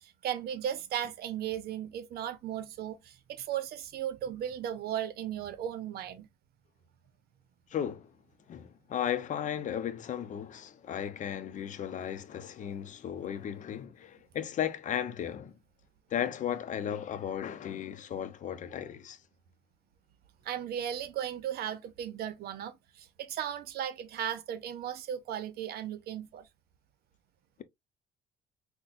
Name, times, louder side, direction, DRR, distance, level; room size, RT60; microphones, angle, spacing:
voice 1, 0.0-6.3 20.4-26.5, right 10 dB, 70° right, 0.7 m, -36 dB
voice 2, 7.7-8.1 8.5-15.5 16.1-19.2, left 9 dB, 50° left, 0.6 m, -35 dB
5.8 x 2.2 x 2.5 m
cardioid pair, 110°, 17 cm